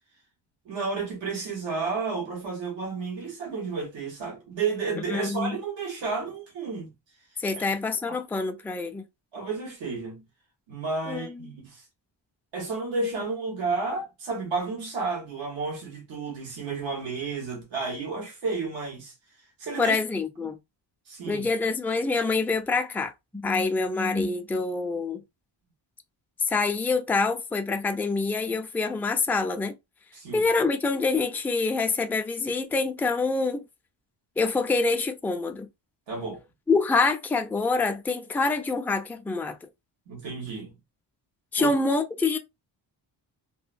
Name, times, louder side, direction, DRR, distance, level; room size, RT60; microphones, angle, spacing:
voice 1, 0.6-6.9 7.5-7.6 8.1-8.2 9.3-10.2 10.7-11.8 12.5-19.1 19.6-20.0 21.1-21.5 30.1-30.5 36.1-36.4 40.1-40.7 41.6-41.7, right 4 dB, 85° right, 1.3 m, -32 dB
voice 2, 5.1-5.6 7.4-9.0 11.1-11.5 19.8-20.6 21.3-25.2 26.5-29.7 30.3-33.6 34.4-35.7 36.7-39.6 41.5-42.4, left 3 dB, 5° left, 0.3 m, -26 dB
2.8 x 2.2 x 2.5 m
cardioid pair, 90°, 44 cm